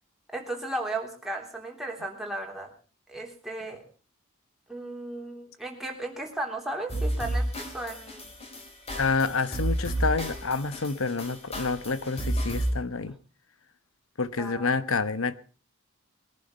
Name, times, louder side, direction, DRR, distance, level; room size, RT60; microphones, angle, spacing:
voice 1, 0.3-2.7 3.1-3.8 4.7-8.3 14.4-14.7, right 2 dB, ahead, 3.5 m, -35 dB
sound 1, 6.9-12.7, right 1 dB, 25° left, 3.7 m, -31 dB
voice 2, 8.9-13.2 14.2-15.3, left 4 dB, 65° left, 1.1 m, -28 dB
21.5 x 11.0 x 5.6 m
head